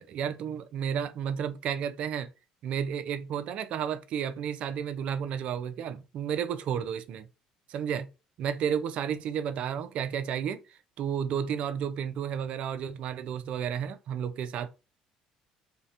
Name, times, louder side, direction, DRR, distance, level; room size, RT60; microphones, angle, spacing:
voice 1, 0.0-2.3 2.6-7.3 7.7-8.1 8.4-10.6 11.0-14.7, right 8 dB, 60° right, 0.3 m, -32 dB
2.7 x 2.0 x 2.5 m
supercardioid pair, 95°, 2 cm